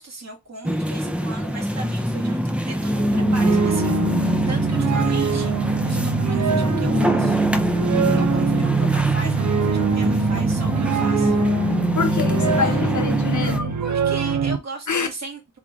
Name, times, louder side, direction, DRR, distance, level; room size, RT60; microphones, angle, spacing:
voice 1, 0.0-7.4 8.1-11.4 12.6-12.8 13.4-15.4, right 3 dB, 60° right, 1.7 m, -36 dB
sound 1, 0.6-13.6, equal, 5° right, 0.5 m, -23 dB
sound 2, 2.8-14.6, right 6 dB, 85° right, 0.5 m, -24 dB
voice 2, 12.0-13.8 14.9-15.1, left 5 dB, 80° left, 0.9 m, -25 dB
3.7 x 3.2 x 3.6 m
wide cardioid pair, 95°, 29 cm